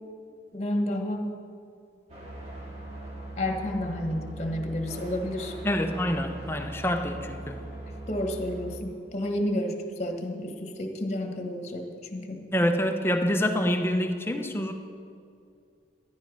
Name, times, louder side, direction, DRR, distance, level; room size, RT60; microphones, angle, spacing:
voice 1, 0.5-1.4 3.4-5.6 8.1-12.4, left 1 dB, 40° left, 4 dB, 1.4 m, -31 dB
sound 1, 2.1-8.8, right 1 dB, 35° right, 2.2 m, -40 dB
voice 2, 5.6-7.6 12.5-14.7, equal, 15° left, 5 dB, 0.8 m, -26 dB
14.0 x 11.0 x 5.4 m, 2.4 s
head